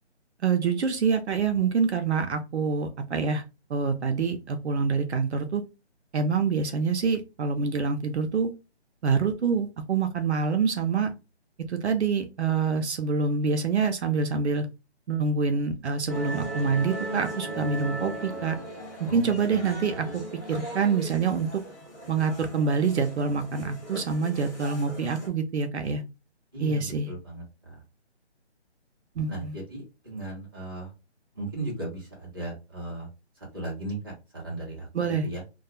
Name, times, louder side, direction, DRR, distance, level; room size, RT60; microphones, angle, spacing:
voice 1, 0.4-3.4 3.7-5.6 6.1-8.5 9.0-11.1 11.7-14.7 15.1-18.6 19.0-20.2 20.5-21.5 22.1-26.0 26.6-27.1 29.2-29.5 34.9-35.3, right 5 dB, 70° right, 6 dB, 0.5 m, -26 dB
sound 1, 16.1-25.3, right 1 dB, 15° left, 1.0 m, -38 dB
voice 2, 19.0-19.3 20.1-20.2 26.5-27.8 29.3-30.9 31.3-33.1 33.5-34.9 35.2-35.4, right 2 dB, 20° right, -5 dB, 0.8 m, -36 dB
2.3 x 2.2 x 2.8 m, 0.28 s
hypercardioid pair, 175°, 35 cm